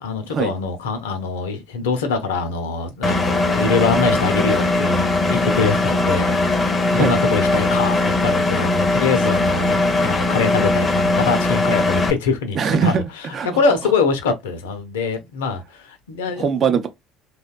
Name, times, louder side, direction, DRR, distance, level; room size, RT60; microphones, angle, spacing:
voice 1, 0.0-13.0 13.4-16.5, left 4 dB, 80° left, 0.5 m, -23 dB
Engine, 3.0-12.1, left 2 dB, 30° left, 0.5 m, -19 dB
voice 2, 12.6-13.5 16.4-16.9, right 6 dB, 45° right, 0.5 m, -21 dB
2.7 x 2.1 x 2.2 m
hypercardioid pair, 60°, 0 cm